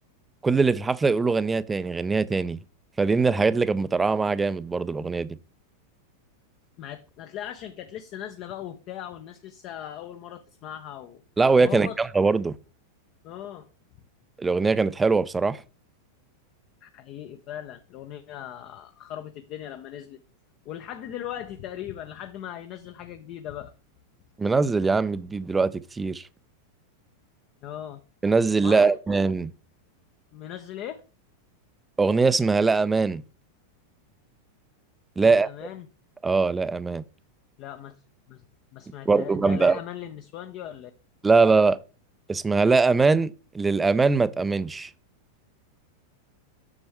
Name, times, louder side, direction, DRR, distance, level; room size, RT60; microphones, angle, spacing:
voice 1, 0.4-2.6 3.0-5.4 11.4-12.5 14.4-15.6 24.4-26.2 28.2-29.5 32.0-33.2 35.2-35.5 36.2-37.0 39.1-39.8 41.2-41.8 42.3-44.9, right 4 dB, 10° right, 0.4 m, -22 dB
voice 2, 6.8-11.2 11.6-12.0 13.2-13.7 16.8-20.2 20.7-23.7 27.6-28.0 28.6-29.0 30.3-31.0 35.2-35.9 37.6-38.0 38.3-38.4 38.7-40.9, left 11 dB, 40° left, 0.5 m, -38 dB
7.2 x 6.2 x 3.3 m
figure-of-eight pair, 90°, 0 cm